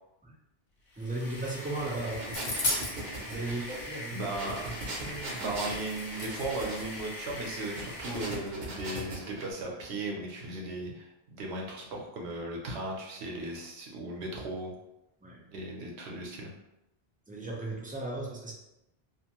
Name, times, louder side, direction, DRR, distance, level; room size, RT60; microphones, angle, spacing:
sound 1, 0.9-8.6, left 1 dB, 55° left, 0.8 m, -43 dB
voice 1, 1.0-2.3 3.3-4.3 4.7-4.8 5.0-5.4 15.2-15.4 17.3-18.5, right 2 dB, 15° right, -4 dB, 0.3 m, -36 dB
sound 2, 1.7-9.5, right 2 dB, 50° right, 0.7 m, -40 dB
sound 3, 2.3-3.0 4.9-5.0 5.2-7.0, left 2 dB, 80° left, 0.9 m, -35 dB
voice 2, 3.5-4.7 5.4-14.7 15.5-16.5, right 2 dB, 80° right, -1 dB, 1.0 m, -37 dB
2.5 x 2.5 x 2.9 m, 0.88 s
omnidirectional pair, 1.1 m